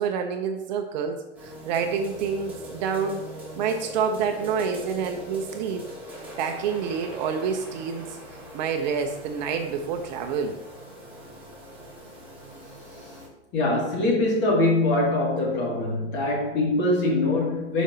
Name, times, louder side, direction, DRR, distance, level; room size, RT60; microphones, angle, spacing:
voice 1, 0.0-3.2 3.6-5.8 6.4-8.2 8.5-10.6, right 6 dB, 40° right, 5 dB, 0.6 m, -28 dB
sound 1, 1.3-13.3, equal, 5° right, 2.3 m, -41 dB
voice 2, 13.5-17.8, left 2 dB, 30° left, -2 dB, 2.3 m, -23 dB
11.0 x 5.1 x 2.7 m, 0.94 s
hypercardioid pair, 145°, 35 cm